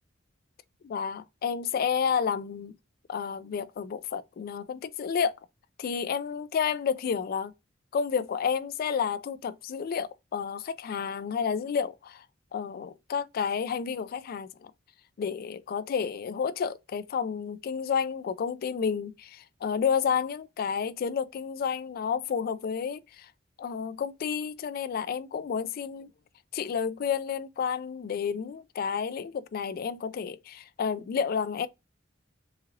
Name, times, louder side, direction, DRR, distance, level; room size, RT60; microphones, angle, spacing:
voice 1, 0.8-2.7 3.1-5.3 5.8-7.5 7.9-12.2 12.5-14.7 15.2-23.3 23.6-26.1 26.5-31.7, left 6 dB, 50° left, 0.3 m, -30 dB
3.9 x 2.8 x 2.6 m
head